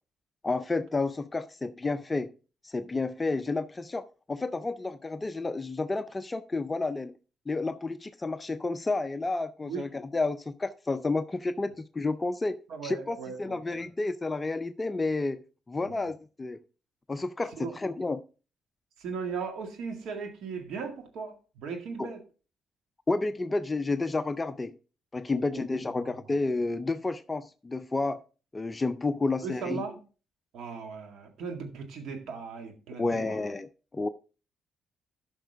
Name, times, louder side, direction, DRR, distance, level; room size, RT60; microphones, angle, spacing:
voice 1, 0.4-2.3 2.6-7.2 7.5-12.6 12.8-15.4 15.7-16.6 17.1-18.2 22.0-22.1 23.1-24.8 25.1-28.2 28.5-29.9 33.0-33.7 33.9-34.1, left 3 dB, 20° left, 10 dB, 0.5 m, -30 dB
voice 2, 12.7-13.9 15.8-16.1 17.6-17.7 19.0-22.2 25.4-25.7 26.0-26.2 29.4-30.0 30.5-33.4, right 5 dB, 80° right, 5 dB, 1.8 m, -38 dB
12.5 x 5.9 x 3.4 m, 0.35 s
cardioid pair, 90°, 0 cm